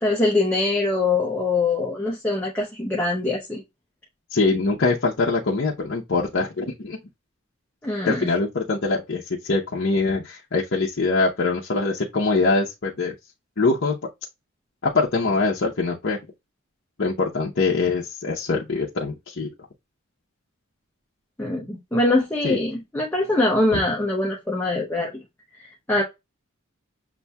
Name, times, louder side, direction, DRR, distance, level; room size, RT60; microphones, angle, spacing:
voice 1, 0.0-3.6 7.8-8.3 21.4-25.2 25.6-26.0, left 2 dB, 10° left, 0.7 m, -23 dB
voice 2, 4.3-7.0 8.1-13.1 13.6-14.0 14.9-16.2 17.0-19.5 22.4-22.6, left 3 dB, 55° left, 0.7 m, -23 dB
6.9 x 2.6 x 2.2 m
head